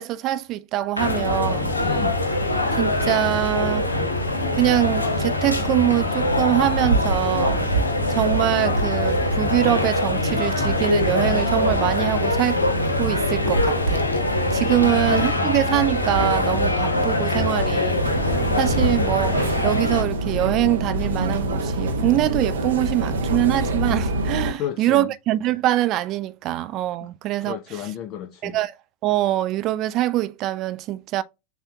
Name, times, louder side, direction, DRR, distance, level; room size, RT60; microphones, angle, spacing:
voice 1, 0.0-1.7 2.8-3.9 4.5-7.6 8.1-12.7 13.0-14.1 14.5-18.0 18.6-27.6 28.4-28.7 29.0-31.2, right 14 dB, 35° right, 0.4 m, -23 dB
sound 1, 1.0-20.0, left 1 dB, 80° left, 0.9 m, -22 dB
voice 2, 1.8-2.2 14.8-15.5 24.5-25.1 27.0-27.1 27.4-28.6, left 11 dB, 35° left, 0.4 m, -33 dB
sound 2, 18.0-24.5, right 1 dB, 65° right, 0.9 m, -25 dB
6.8 x 2.7 x 2.2 m
figure-of-eight pair, 90°, 0 cm